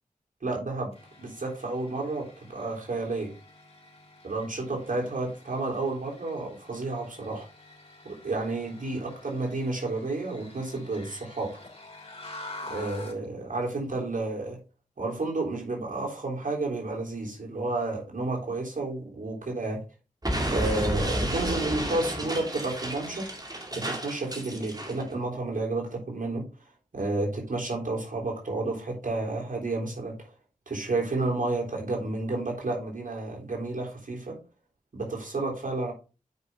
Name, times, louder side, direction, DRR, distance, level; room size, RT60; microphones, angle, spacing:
voice 1, 0.4-0.9 1.2-3.3 4.2-7.5 8.0-11.5 12.7-14.6 15.0-19.8 20.5-23.3 23.7-26.5 26.9-30.3 30.7-34.4 34.9-35.9, right 2 dB, 70° right, -2 dB, 3.5 m, -31 dB
sound 1, 0.9-13.2, left 2 dB, 45° left, 3.2 m, -47 dB
Explosion, 20.2-25.0, right 1 dB, 25° right, 2.3 m, -31 dB
9.4 x 5.4 x 3.6 m, 0.32 s
cardioid pair, 45°, 15 cm